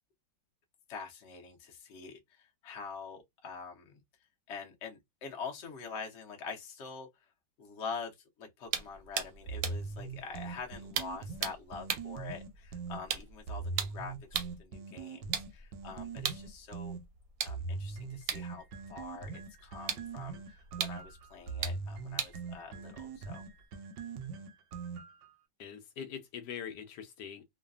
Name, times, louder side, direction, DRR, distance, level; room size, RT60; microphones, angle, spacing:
voice 1, 0.9-4.0 4.5-7.3 7.6-17.0 17.4-18.6 18.9-23.4, left 5 dB, 55° left, 0.9 m, -45 dB
sound 1, 8.7-14.7 15.2-23.6, right 8 dB, 65° right, 0.9 m, -40 dB
sound 2, 9.5-13.0 13.5-17.0 17.5-25.3, right 4 dB, 85° right, 1.2 m, -41 dB
voice 2, 25.6-27.4, left 8 dB, 75° left, 1.2 m, -43 dB
3.1 x 2.2 x 2.4 m
omnidirectional pair, 1.9 m